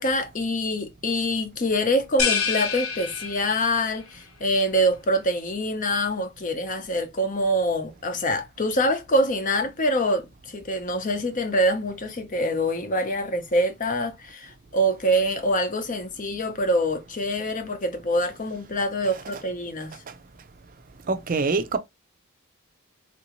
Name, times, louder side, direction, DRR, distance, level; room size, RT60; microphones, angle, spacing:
voice 1, 0.0-20.0, equal, 35° left, 0.7 m, -25 dB
sound 1, 2.2-3.9, left 6 dB, 80° left, 1.0 m, -27 dB
voice 2, 21.1-21.8, right 4 dB, 40° right, 0.5 m, -24 dB
3.7 x 2.6 x 2.9 m
head